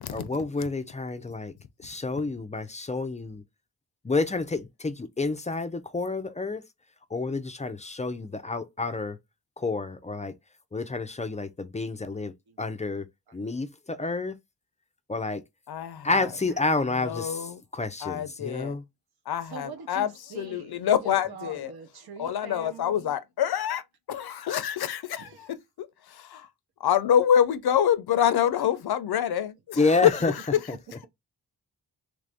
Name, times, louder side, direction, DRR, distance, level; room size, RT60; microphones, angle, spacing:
voice 1, 0.1-1.5 1.8-3.4 4.0-6.6 7.1-9.2 9.6-10.3 10.7-13.1 13.3-14.4 15.1-15.4 16.0-18.8 29.8-30.3 30.7-30.8, left 3 dB, 20° left, 0.3 m, -29 dB
voice 2, 12.5-13.0 13.3-13.4 18.4-18.5 19.4-23.2 24.1-24.5 25.0-25.6 28.2-28.3 30.0-30.1 30.5-31.1, right 6 dB, 75° right, 0.8 m, -45 dB
voice 3, 15.7-16.3 17.0-17.6 18.0-18.7 19.3-20.1 20.4-21.7 22.2-23.8 24.1-25.3 25.8-26.5 26.8-30.3, left 9 dB, 80° left, 0.6 m, -26 dB
3.2 x 2.6 x 3.4 m
wide cardioid pair, 130°, 38 cm